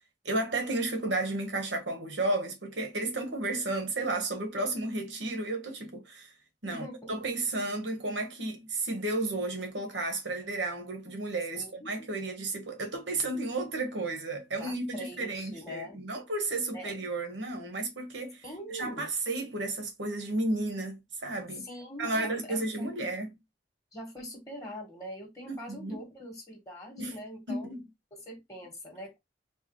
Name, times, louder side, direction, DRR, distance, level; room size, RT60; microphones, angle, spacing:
voice 1, 0.2-6.3 6.6-18.4 18.7-21.7 22.0-23.3 25.5-26.0 27.0-27.2 27.5-27.8, right 2 dB, 75° right, 1.3 m, -33 dB
voice 2, 6.6-7.1 11.5-11.9 14.6-16.0 16.7-16.9 18.4-19.1 21.6-22.9 23.9-27.7 28.1-29.2, equal, 20° left, 1.6 m, -43 dB
4.7 x 2.3 x 3.1 m
head